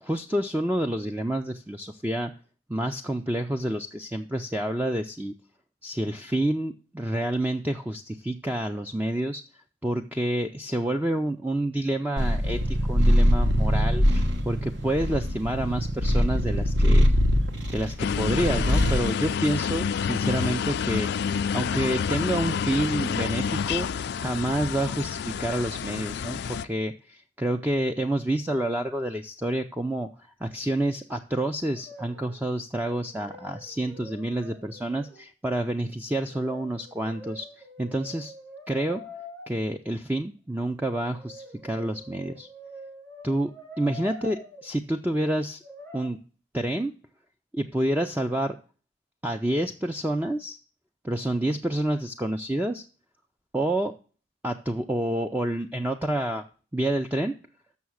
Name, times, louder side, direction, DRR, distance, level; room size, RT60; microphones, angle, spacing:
voice 1, 0.0-2.3 2.7-5.3 5.8-9.4 9.8-17.1 17.7-30.1 30.4-37.5 37.8-38.3 38.7-39.0 39.5-42.5 43.2-45.6 45.9-46.2 46.5-46.9 47.5-48.6 49.2-50.6 51.0-52.8 53.5-53.9 54.4-56.4 56.7-57.4, right 1 dB, 10° right, 5 dB, 0.4 m, -28 dB
Purr, 12.2-19.1, equal, 65° right, 1.2 m, -22 dB
sound 1, 18.0-26.6, left 7 dB, 60° left, 0.4 m, -28 dB
Brass instrument, 31.7-32.4 32.7-35.2 36.2-39.4 40.8-44.6 45.6-46.1, equal, 90° right, 5.6 m, -45 dB
7.0 x 6.4 x 6.3 m, 0.37 s
head